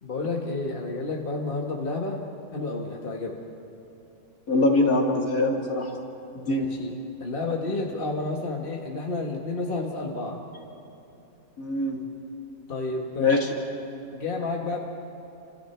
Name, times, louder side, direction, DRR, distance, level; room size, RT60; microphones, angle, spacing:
voice 1, 0.0-2.2 2.5-3.4 6.4-6.9 7.2-10.4 12.7-13.4 14.1-14.8, left 3 dB, 35° left, 0 dB, 1.8 m, -30 dB
voice 2, 4.5-6.0 6.3-6.7 11.6-12.0 13.2-13.5, left 2 dB, 60° left, -1 dB, 3.0 m, -23 dB
29.5 x 26.0 x 4.5 m, 2.8 s
omnidirectional pair, 1.7 m